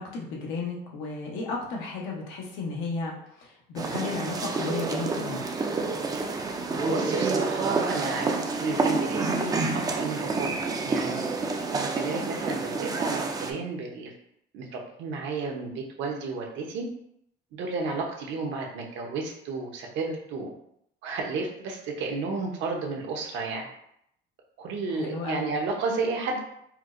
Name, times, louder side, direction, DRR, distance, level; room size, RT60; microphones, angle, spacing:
voice 1, 0.0-5.4 24.9-25.5, left 3 dB, 85° left, -2 dB, 0.9 m, -34 dB
sound 1, 3.8-13.5, right 3 dB, 20° right, 0.3 m, -28 dB
voice 2, 6.7-10.6 10.8-14.1 14.5-16.9 17.5-20.5 21.0-23.7 24.6-26.4, right 3 dB, 70° right, 1 dB, 0.8 m, -32 dB
4.4 x 2.0 x 2.5 m, 0.74 s
cardioid pair, 120°, 20 cm